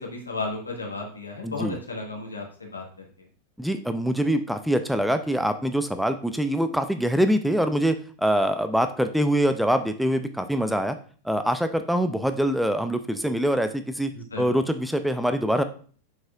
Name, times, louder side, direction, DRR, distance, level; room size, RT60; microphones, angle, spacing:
voice 1, 0.0-2.8 14.1-14.6, left 3 dB, 80° left, 0 dB, 1.9 m, -34 dB
voice 2, 1.4-1.8 3.6-11.0 11.2-14.1 14.4-15.6, equal, ahead, 9 dB, 0.5 m, -24 dB
7.8 x 6.2 x 2.5 m, 0.43 s
figure-of-eight pair, 90°, 0 cm